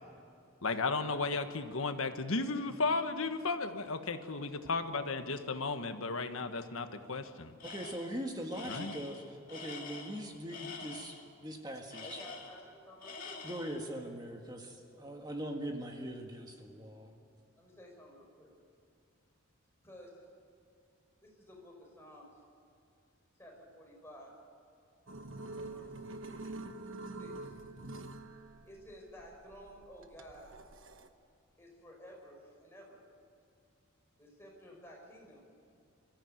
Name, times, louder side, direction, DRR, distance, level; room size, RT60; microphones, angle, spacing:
voice 1, 0.6-7.5 8.7-8.9, left 3 dB, 80° left, 8 dB, 1.4 m, -34 dB
Tools, 7.6-8.2 8.5-11.2 11.9-12.7 13.0-13.8, left 4 dB, 40° left, 2.3 m, -46 dB
voice 2, 7.6-12.2 13.4-17.1, right 1 dB, 20° right, 3 dB, 1.6 m, -41 dB
voice 3, 12.0-13.4 14.8-14.9 17.6-18.5 19.8-20.1 21.2-22.3 23.4-24.3 25.5-25.9 27.0-27.5 28.6-30.5 31.6-33.0 34.2-35.4 35.7-35.8, equal, 10° left, -2 dB, 5.2 m, -53 dB
sound 1, 25.1-31.1, right 2 dB, 70° right, 1.2 m, -46 dB
23.5 x 14.5 x 9.1 m, 2.6 s
head